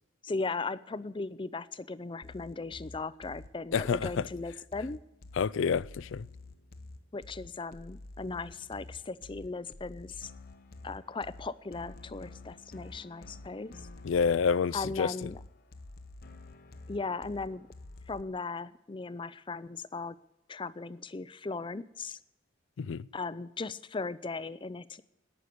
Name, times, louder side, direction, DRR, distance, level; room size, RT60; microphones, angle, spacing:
voice 1, 0.2-5.0 7.1-10.3 10.8-13.7 14.7-15.4 16.9-17.7 18.1-20.2 20.5-22.2 23.1-25.0, left 3 dB, 25° left, 0.5 m, -37 dB
sound 1, 2.2-18.2, left 2 dB, 50° left, 0.8 m, -49 dB
voice 2, 3.7-4.1 5.4-6.3 14.0-15.3 22.8-23.1, left 6 dB, 80° left, 0.4 m, -28 dB
18.0 x 6.5 x 8.3 m
head